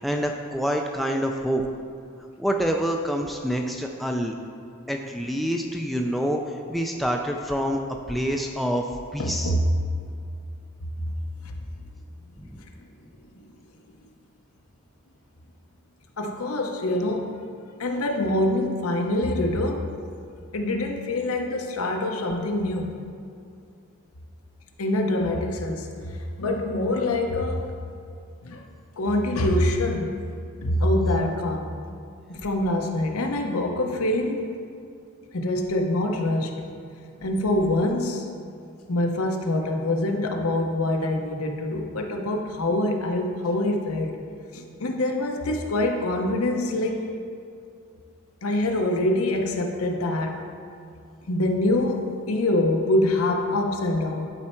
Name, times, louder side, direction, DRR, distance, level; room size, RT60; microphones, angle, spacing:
voice 1, 0.0-1.6 2.4-4.3 4.9-6.4 6.7-7.8 8.1-8.9 9.1-9.5 12.4-12.5, equal, ahead, 2 dB, 0.3 m, -26 dB
voice 2, 9.2-9.7 12.8-12.9 13.3-13.4 16.2-17.3 17.8-19.9 20.5-23.0 24.8-27.7 28.4-28.7 29.0-30.2 30.6-31.8 32.3-34.4 35.3-36.5 37.2-38.3 38.9-44.2 44.5-47.0 48.4-50.4 51.3-54.3, left 1 dB, 80° left, 3 dB, 0.9 m, -25 dB
11.0 x 4.3 x 4.4 m, 2.4 s
head